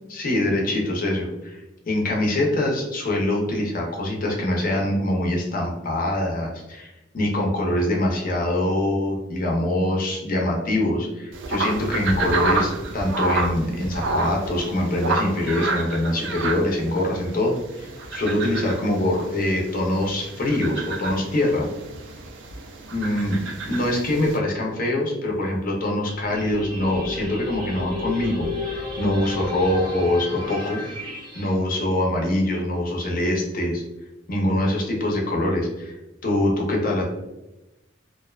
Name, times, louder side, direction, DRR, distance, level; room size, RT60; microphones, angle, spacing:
voice 1, 0.1-21.7 22.9-23.4 23.7-28.5 28.7-30.8 31.3-33.8 34.3-37.1, left 1 dB, 45° left, -1 dB, 0.5 m, -24 dB
sound 1, 11.3-24.4, right 3 dB, 70° right, 0.4 m, -30 dB
sound 2, 26.0-31.5, left 2 dB, 20° right, 0.6 m, -33 dB
2.5 x 2.1 x 2.3 m, 0.98 s
head